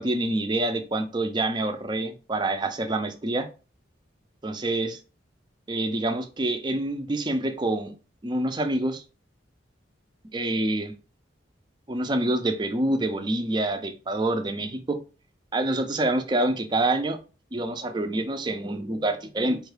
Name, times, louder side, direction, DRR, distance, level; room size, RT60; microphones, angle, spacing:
voice 1, 0.0-3.5 4.4-5.0 5.7-7.9 8.2-9.0 10.3-10.9 11.9-15.0 15.5-17.2 17.5-19.6, right 2 dB, 25° right, 0.4 m, -26 dB
4.5 x 2.3 x 3.2 m
head